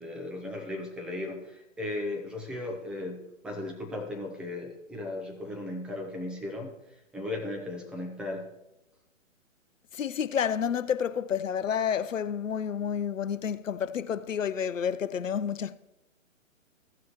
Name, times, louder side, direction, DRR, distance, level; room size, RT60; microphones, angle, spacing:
voice 1, 0.0-8.5, left 2 dB, ahead, 0.6 m, -36 dB
voice 2, 9.9-15.8, left 8 dB, 80° left, 0.6 m, -30 dB
16.0 x 6.1 x 3.0 m
figure-of-eight pair, 130°, 39 cm